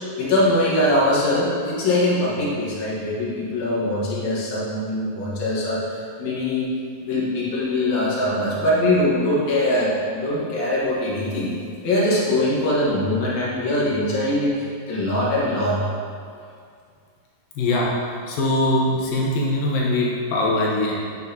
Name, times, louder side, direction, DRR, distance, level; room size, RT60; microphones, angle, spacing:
voice 1, 0.2-6.7 7.0-11.5 11.8-15.8, left 1 dB, 60° left, -7 dB, 2.4 m, -22 dB
voice 2, 17.6-17.9 18.3-20.9, left 1 dB, 75° left, -3 dB, 2.8 m, -21 dB
8.5 x 6.4 x 2.8 m, 2.2 s
omnidirectional pair, 4.3 m